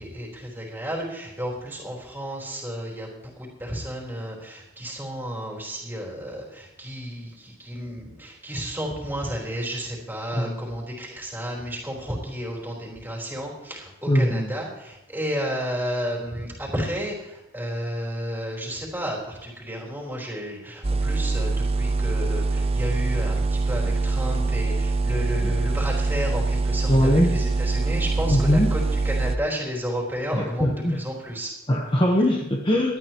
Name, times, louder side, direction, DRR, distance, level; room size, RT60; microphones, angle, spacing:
voice 1, 0.0-31.5, equal, 10° right, -3 dB, 4.0 m, -32 dB
voice 2, 14.1-14.5 25.4-25.5 26.9-27.3 28.3-28.7 30.3-31.0 31.7-33.0, equal, 25° left, 1 dB, 1.1 m, -21 dB
sound 1, 20.8-29.4, right 3 dB, 25° right, 0.5 m, -24 dB
18.5 x 12.5 x 3.0 m, 0.96 s
head